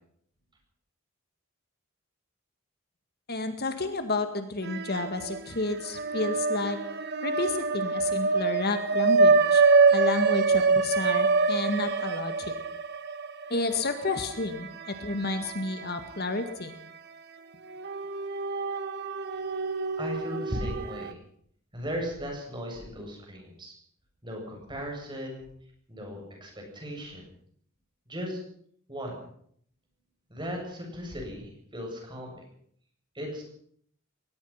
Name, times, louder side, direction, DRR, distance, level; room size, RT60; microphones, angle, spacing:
voice 1, 3.3-6.8 7.2-9.6 9.9-12.5 13.5-16.7, left 3 dB, 50° left, 8 dB, 2.0 m, -31 dB
sound 1, 4.6-5.4 5.8-16.1 16.5-16.6 17.7-21.1, right 4 dB, 50° right, 1.4 m, -26 dB
voice 2, 20.0-21.1 21.7-23.7 24.2-25.5 25.9-27.2 28.1-28.4 28.9-29.2 30.3-32.4 33.1-33.4, equal, 20° right, 1 dB, 7.8 m, -37 dB
22.5 x 20.0 x 5.9 m, 0.64 s
head